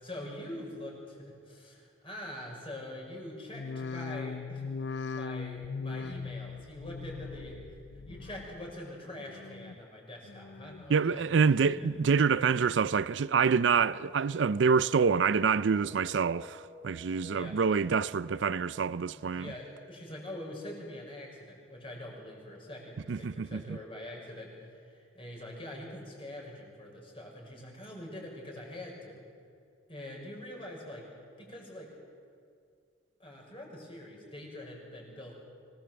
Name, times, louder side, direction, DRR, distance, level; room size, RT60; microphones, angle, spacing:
voice 1, 0.0-11.3 11.6-11.9 17.2-17.5 19.1-29.2 29.9-31.1 31.4-31.9 33.2-35.4, left 1 dB, 30° left, 6.1 m, -44 dB
sound 1, 3.5-8.8 9.1-9.8 10.2-10.9 11.3-12.0 12.4-13.1 13.5-14.1 14.7-14.8, left 5 dB, 70° left, 0.5 m, -41 dB
sound 2, 10.7-21.2, left 1 dB, 5° right, 4.0 m, -55 dB
voice 2, 10.9-19.5 23.1-23.8, right 5 dB, 80° right, 0.4 m, -26 dB
25.0 x 18.0 x 7.8 m
head